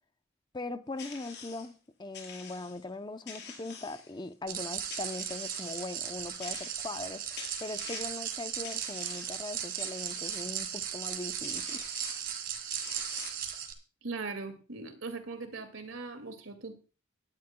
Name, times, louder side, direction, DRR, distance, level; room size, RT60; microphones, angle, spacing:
voice 1, 0.5-11.8, left 2 dB, 20° left, 0.6 m, -40 dB
sound 1, 1.0-1.7 2.1-2.8 3.3-4.3 4.9-5.9 6.4-7.0 7.4-8.2 8.6-9.4 9.8-10.5 11.1-11.2 11.4-12.3 12.7-13.5, left 6 dB, 60° left, 4.0 m, -46 dB
sound 2, 4.5-13.7, right 9 dB, 50° right, 2.1 m, -37 dB
voice 2, 14.0-16.7, right 4 dB, 75° right, 2.2 m, -40 dB
19.0 x 11.5 x 2.2 m
head